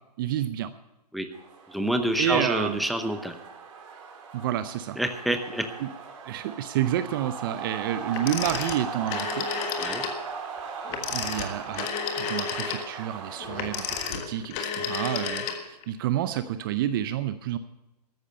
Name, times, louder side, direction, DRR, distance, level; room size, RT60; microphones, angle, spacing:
voice 1, 0.2-0.7 2.2-2.8 4.3-5.0 5.8-5.9 6.2-9.5 11.1-11.9 12.2-17.6, right 11 dB, 30° right, 12 dB, 0.6 m, -29 dB
sound 1, 1.3-14.0, right 5 dB, 50° right, 3.0 m, -39 dB
voice 2, 1.7-3.3 5.0-5.7 9.8-10.0, right 1 dB, ahead, 7 dB, 0.8 m, -27 dB
Telephone, 8.1-10.2 10.9-15.9, left 7 dB, 25° left, 1.5 m, -32 dB
14.0 x 10.0 x 6.7 m, 0.98 s
hypercardioid pair, 135°, 21 cm